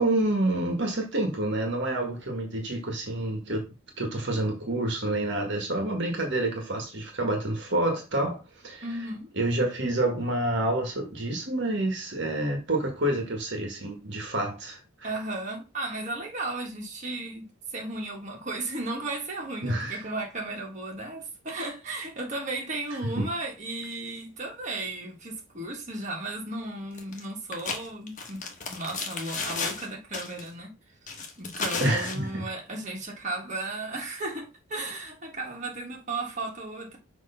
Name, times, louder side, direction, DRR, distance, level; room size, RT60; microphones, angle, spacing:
voice 1, 0.0-3.7 4.0-8.8 9.4-15.1 19.6-20.0 23.2-23.3 31.8-32.4, right 1 dB, 55° right, 1.4 m, -28 dB
voice 2, 8.8-9.3 15.0-28.4 28.7-30.7 31.4-37.0, right 2 dB, 35° right, 1.6 m, -35 dB
sound 1, 27.0-27.2 27.5-29.9 30.1-30.5 31.1-32.2, left 4 dB, 35° left, 1.2 m, -33 dB
6.3 x 3.0 x 5.5 m
head